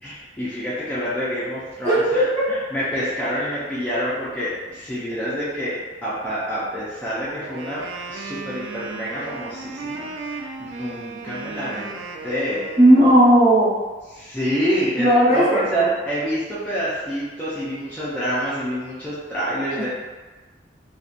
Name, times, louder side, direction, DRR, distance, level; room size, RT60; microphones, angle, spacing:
voice 1, 0.0-2.2 2.5-7.8 8.1-12.6 14.1-19.9, equal, 10° left, -11 dB, 0.4 m, -27 dB
voice 2, 1.8-2.4 12.8-13.7 15.0-15.9 19.7-19.9, right 1 dB, 40° right, -11 dB, 1.2 m, -15 dB
Wind instrument woodwind instrument, 7.4-13.3, right 4 dB, 90° right, 0.3 m, -35 dB
2.7 x 2.1 x 2.4 m, 1.2 s
head